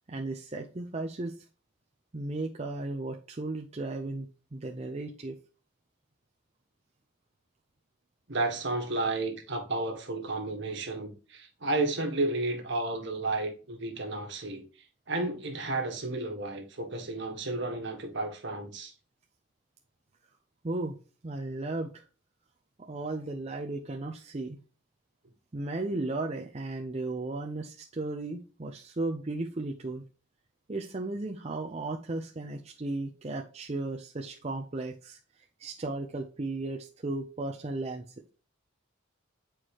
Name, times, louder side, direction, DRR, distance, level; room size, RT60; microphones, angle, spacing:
voice 1, 0.1-1.3 2.1-4.3 4.5-5.4 20.6-21.0 21.2-22.0 22.8-24.6 25.5-30.0 30.7-35.2 35.6-38.0, right 2 dB, 30° right, 0.6 m, -35 dB
voice 2, 8.3-14.6 15.1-18.9, right 2 dB, 60° right, 1.5 m, -32 dB
8.2 x 4.6 x 3.0 m
head